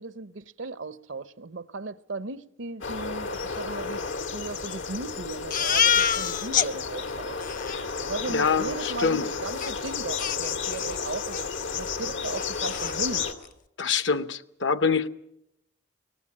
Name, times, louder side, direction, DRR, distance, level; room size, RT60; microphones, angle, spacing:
voice 1, 0.0-4.0 4.3-7.4 8.0-13.3, right 3 dB, 80° right, 0.9 m, -36 dB
sound 1, 2.8-13.3, left 5 dB, 90° left, 2.3 m, -32 dB
Crying sobbing, 5.5-6.7 7.1-7.2 7.4-7.8 9.6-9.7 10.2-11.0 11.3-11.5 11.8-11.9 12.3-13.0, left 8 dB, 45° left, 0.8 m, -26 dB
voice 2, 8.3-9.3 13.8-15.1, left 5 dB, 70° left, 0.9 m, -25 dB
23.5 x 19.0 x 8.7 m
head